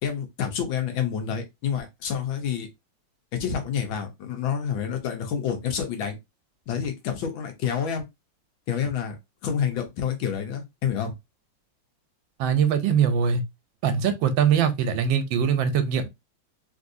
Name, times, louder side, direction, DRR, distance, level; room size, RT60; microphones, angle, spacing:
voice 1, 0.0-2.7 3.3-6.2 6.7-8.1 8.7-9.1 9.4-11.1, left 8 dB, 85° left, 1.6 m, -28 dB
voice 2, 12.4-13.4 13.8-16.1, right 7 dB, 85° right, 1.4 m, -22 dB
3.5 x 2.7 x 2.5 m
omnidirectional pair, 2.1 m